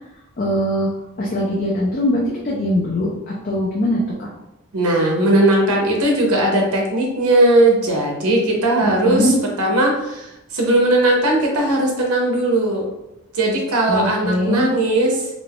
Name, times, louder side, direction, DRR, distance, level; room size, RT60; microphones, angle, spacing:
voice 1, 0.4-0.9 1.2-4.3 8.8-9.4 13.9-14.7, equal, 40° left, -4 dB, 0.4 m, -21 dB
voice 2, 4.7-12.9 13.3-15.3, right 1 dB, 80° right, 0 dB, 0.6 m, -18 dB
2.5 x 2.3 x 3.3 m, 0.90 s
head